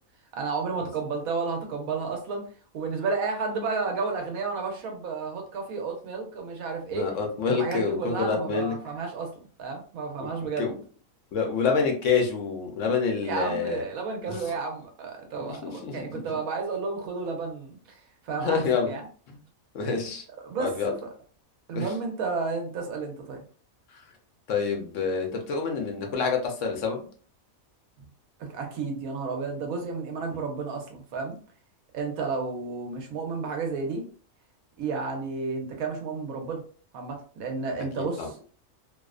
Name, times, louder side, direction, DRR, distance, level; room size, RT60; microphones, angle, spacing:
voice 1, 0.3-2.5 2.7-7.1 7.5-9.3 9.6-10.7 13.2-19.1 20.4-20.7 21.0-21.1 21.7-23.4 28.4-31.4 31.9-34.0 34.8-36.6 36.9-38.4, right 4 dB, 85° right, 3 dB, 1.1 m, -32 dB
voice 2, 6.9-8.7 10.2-10.3 10.6-10.7 11.3-13.8 14.3-14.4 15.5-16.0 18.4-18.9 19.7-20.2 20.6-20.9 21.7-21.9 24.5-27.0 38.0-38.3, left 5 dB, 70° left, 2 dB, 0.9 m, -27 dB
2.7 x 2.0 x 2.3 m, 0.42 s
omnidirectional pair, 1.5 m